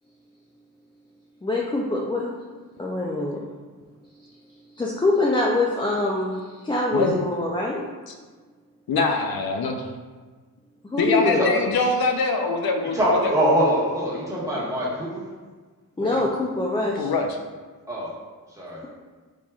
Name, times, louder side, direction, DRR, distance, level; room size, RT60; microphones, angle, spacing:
voice 1, 1.4-2.4 2.8-3.4 4.8-7.8 10.8-11.4 16.0-17.1, left 2 dB, 15° left, -3 dB, 0.3 m, -24 dB
voice 2, 8.9-9.8 11.0-13.3 16.0-16.3 17.0-17.4, left 3 dB, 85° left, 3 dB, 0.6 m, -24 dB
voice 3, 12.9-15.2 17.9-18.1 18.6-18.8, equal, 10° right, -7 dB, 1.2 m, -23 dB
4.7 x 4.2 x 2.3 m, 1.4 s
wide cardioid pair, 125°, 35 cm